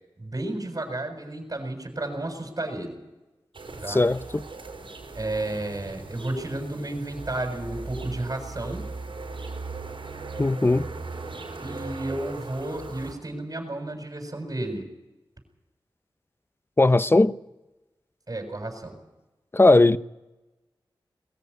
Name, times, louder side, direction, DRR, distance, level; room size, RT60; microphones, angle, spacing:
voice 1, 0.2-3.0 3.8-4.0 5.1-8.8 11.6-14.8 18.3-18.9, right 2 dB, 40° right, 6.8 m, -32 dB
sound 1, 3.5-13.1, right 3 dB, 75° right, 4.5 m, -38 dB
voice 2, 3.9-4.4 10.4-10.9 16.8-17.3 19.5-20.0, left 2 dB, 25° left, 0.8 m, -18 dB
21.5 x 14.5 x 9.8 m
cardioid pair, 50°, 9 cm